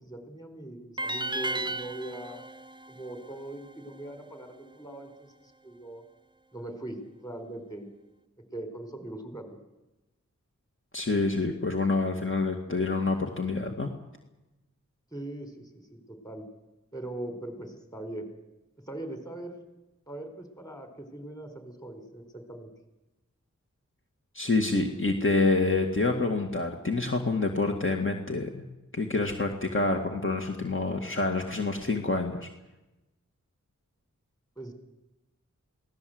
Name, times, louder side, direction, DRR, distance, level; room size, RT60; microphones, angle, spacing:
voice 1, 0.0-2.4 2.9-6.0 6.5-7.9 8.5-9.6 15.1-16.5 16.9-18.3 18.8-19.6 20.1-22.7 34.6-34.7, right 1 dB, 10° left, 7 dB, 4.3 m, -41 dB
sound 1, 1.0-4.1, right 2 dB, 15° right, 0.7 m, -35 dB
voice 2, 10.9-13.9 24.3-28.6 28.9-32.5, left 3 dB, 40° left, 2 dB, 2.2 m, -27 dB
24.0 x 17.5 x 8.0 m, 1.0 s
wide cardioid pair, 65°, 30 cm